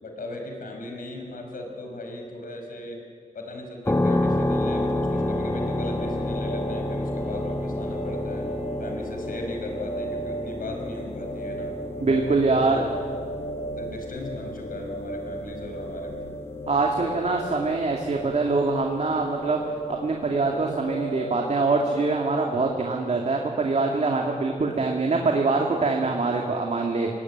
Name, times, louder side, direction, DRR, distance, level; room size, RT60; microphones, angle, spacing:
voice 1, 0.0-3.0 3.3-8.5 8.8-11.8 12.4-12.8 13.7-16.3, left 1 dB, 85° left, 3 dB, 5.1 m, -37 dB
sound 1, 3.9-18.5, left 1 dB, 20° left, 1.3 m, -30 dB
sound 2, 5.1-22.7, right 1 dB, 60° left, 1.6 m, -36 dB
voice 2, 12.0-12.9 16.7-19.6 20.0-27.1, right 3 dB, 55° right, 1 dB, 2.3 m, -24 dB
26.5 x 19.0 x 9.3 m, 2.2 s
wide cardioid pair, 115°, 14 cm